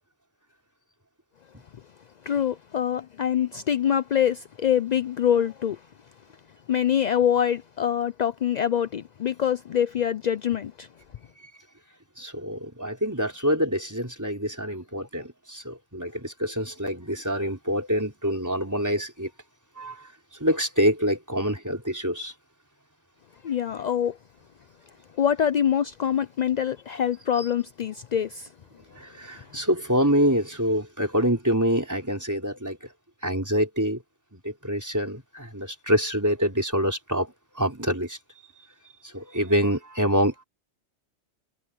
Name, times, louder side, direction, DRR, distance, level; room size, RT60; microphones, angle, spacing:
voice 1, 2.3-5.8 6.7-10.9 23.4-24.2 25.2-28.5, left 9 dB, 65° left, 0.4 m, -25 dB
voice 2, 12.2-19.3 19.8-20.1 20.4-22.3 27.4-27.5 28.9-32.8 33.2-34.0 34.3-38.2 39.0-40.4, equal, 15° right, 4.0 m, -26 dB
omnidirectional pair, 1.3 m